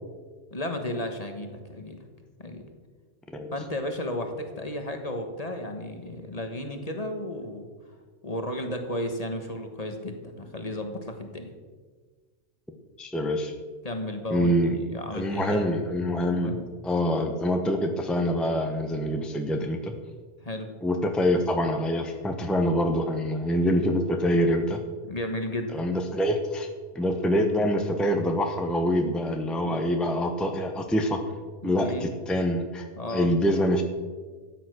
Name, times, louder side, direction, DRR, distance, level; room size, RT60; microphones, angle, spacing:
voice 1, 0.5-2.0 2.4-2.6 3.5-7.7 8.2-11.5 13.8-15.6 16.3-16.7 20.4-20.7 25.1-25.8 29.7-29.9 31.6-32.1 33.0-33.3, left 1 dB, 35° left, 5 dB, 1.4 m, -33 dB
voice 2, 13.0-13.5 14.3-14.8 15.1-19.9 20.8-24.8 25.7-26.7 26.9-31.2 31.6-33.8, equal, ahead, 4 dB, 0.9 m, -25 dB
13.5 x 9.1 x 6.3 m, 1.4 s
omnidirectional pair, 1.2 m